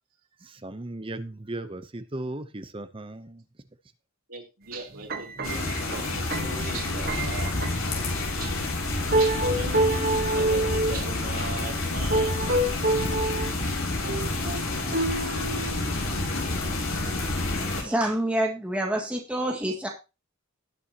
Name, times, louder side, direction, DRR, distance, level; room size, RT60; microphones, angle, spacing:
voice 1, 0.6-3.4, right 2 dB, 25° right, 0.8 m, -36 dB
voice 2, 4.3-8.6 9.1-12.4 13.6-13.7 17.8-18.0, right 3 dB, 85° right, 3.1 m, -39 dB
sound 1, 4.9-8.0 8.6-8.7 9.1-11.0 11.9-13.6 14.0-16.4 16.8-17.2 17.8-17.9, right 1 dB, 45° right, 1.2 m, -28 dB
sound 2, 5.4-17.8, left 2 dB, 80° left, 3.9 m, -29 dB
voice 3, 17.6-19.9, right 1 dB, 5° right, 1.9 m, -27 dB
18.5 x 6.9 x 3.0 m
head